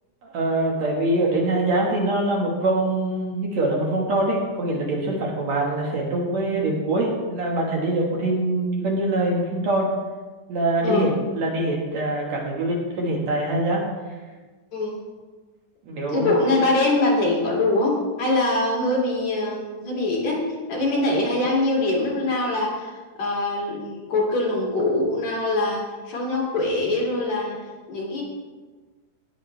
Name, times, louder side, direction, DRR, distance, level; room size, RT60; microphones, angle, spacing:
voice 1, 0.2-9.9 10.5-13.8 15.8-16.4, right 2 dB, 60° right, -1 dB, 2.7 m, -24 dB
voice 2, 16.1-27.6 27.9-28.2, left 2 dB, 60° left, -4 dB, 3.7 m, -23 dB
18.5 x 7.3 x 3.3 m, 1.3 s
omnidirectional pair, 3.8 m